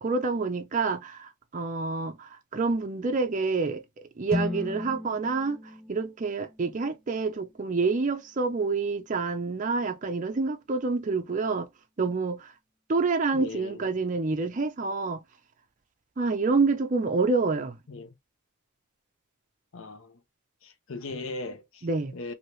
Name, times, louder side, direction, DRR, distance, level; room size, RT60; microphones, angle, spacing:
voice 1, 0.0-3.8 4.2-11.7 12.0-12.5 12.9-15.2 16.2-17.8 21.8-22.1, right 4 dB, 35° right, 0.4 m, -27 dB
sound 1, 4.3-8.3, left 2 dB, 5° left, 0.6 m, -37 dB
voice 2, 13.3-13.9 17.9-18.1 19.7-20.2 20.6-21.9 22.1-22.3, left 3 dB, 70° left, 0.6 m, -38 dB
2.9 x 2.7 x 3.0 m
head